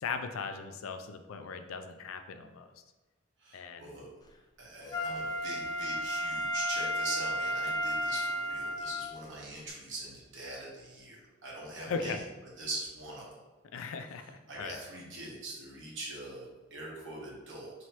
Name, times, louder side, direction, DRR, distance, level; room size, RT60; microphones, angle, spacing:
voice 1, 0.0-2.7 3.5-3.9 11.9-12.2 13.7-14.2 14.6-14.8, left 5 dB, 90° left, 7 dB, 0.4 m, -38 dB
voice 2, 3.4-4.1 4.6-12.2 12.6-13.3 14.5-17.7, right 2 dB, 60° right, -4 dB, 1.3 m, -42 dB
Wind instrument woodwind instrument, 4.9-9.2 9.7-9.8, equal, 20° left, 0.3 m, -33 dB
3.0 x 3.0 x 4.5 m, 1.2 s
head